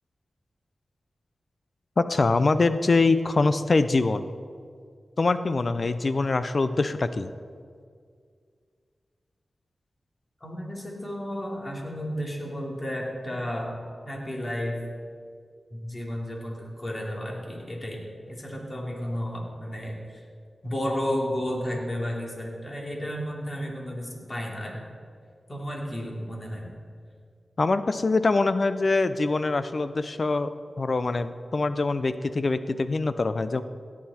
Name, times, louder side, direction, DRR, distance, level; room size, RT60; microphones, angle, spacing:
voice 1, 2.0-4.2 5.2-7.3 27.6-30.5 30.8-33.6, left 3 dB, 55° left, 12 dB, 0.6 m, -24 dB
voice 2, 10.4-13.8 14.0-14.8 15.7-20.2 20.6-24.9 25.5-26.7, equal, 30° left, -2 dB, 3.1 m, -32 dB
17.0 x 8.6 x 4.4 m, 2.1 s
cardioid pair, 50°, 0 cm